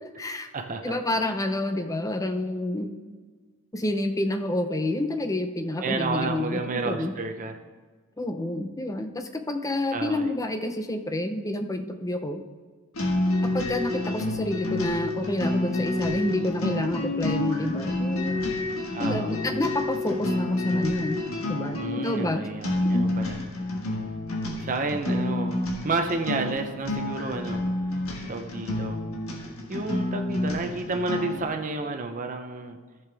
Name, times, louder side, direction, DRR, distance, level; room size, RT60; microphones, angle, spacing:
voice 1, 0.0-0.5 0.8-2.9 3.7-7.1 8.2-12.4 13.5-18.5 19.0-22.4 22.9-23.0, left 1 dB, 15° left, 7 dB, 0.6 m, -29 dB
voice 2, 0.5-1.0 5.8-7.6 9.9-10.3 18.9-19.4 21.8-23.4 24.6-27.6 28.3-29.0 29.7-32.8, right 3 dB, 35° right, 4 dB, 0.6 m, -31 dB
sound 1, 12.9-31.5, left 1 dB, 75° left, 1.4 m, -29 dB
14.0 x 6.8 x 3.4 m, 1.4 s
head